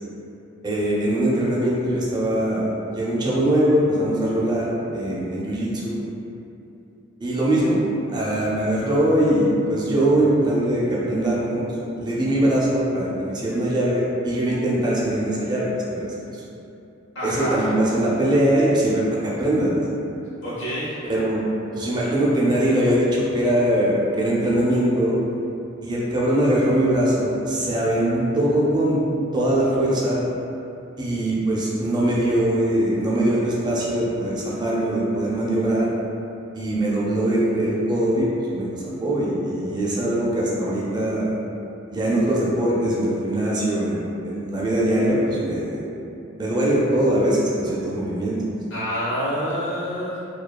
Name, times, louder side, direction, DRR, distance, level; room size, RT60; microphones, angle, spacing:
voice 1, 0.6-6.0 7.2-7.8 8.1-11.6 12.0-16.1 17.2-19.7 21.0-21.4 21.7-25.2 25.8-29.0 29.3-30.3 31.0-35.9 36.5-38.3 38.5-41.3 41.9-45.8 46.4-48.4, right 1 dB, 20° right, -6 dB, 0.4 m, -22 dB
voice 2, 17.1-17.7 20.4-21.0 48.7-50.2, equal, 70° left, -9 dB, 0.9 m, -27 dB
2.9 x 2.2 x 2.2 m, 2.7 s
head